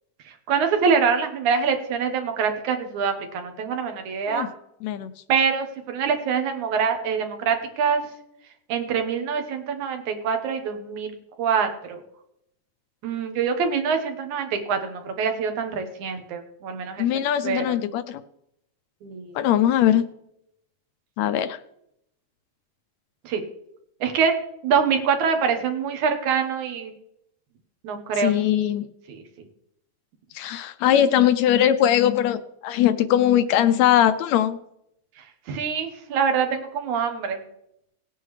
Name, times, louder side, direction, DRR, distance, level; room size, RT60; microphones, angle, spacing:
voice 1, 0.3-4.5 5.3-8.0 8.7-11.1 11.4-12.0 13.0-17.1 17.4-17.8 19.0-19.5 23.2-23.4 24.0-24.4 24.6-26.9 27.8-28.3 29.1-29.2 35.2-37.4, right 6 dB, 80° right, 5 dB, 2.6 m, -25 dB
voice 2, 17.0-18.2 19.3-20.0 21.2-21.6 28.2-28.9 30.3-34.6, left 11 dB, 80° left, 11 dB, 1.7 m, -20 dB
18.0 x 9.1 x 3.2 m, 0.79 s
omnidirectional pair, 3.4 m